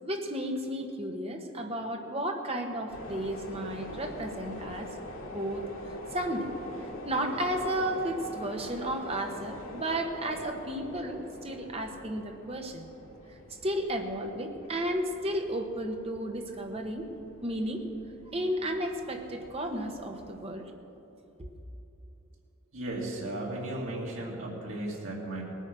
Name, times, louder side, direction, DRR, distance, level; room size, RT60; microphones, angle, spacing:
voice 1, 0.0-4.9 5.3-5.6 6.1-6.5 6.8-12.8 13.6-17.1 17.4-17.8 18.3-20.6 21.4-21.5, right 1 dB, 30° right, 3 dB, 1.1 m, -33 dB
sound 1, 2.9-20.4, left 1 dB, 85° left, 2.1 m, -44 dB
voice 2, 22.7-25.4, right 1 dB, 80° right, -3 dB, 2.5 m, -35 dB
18.0 x 9.2 x 6.2 m, 2.9 s
head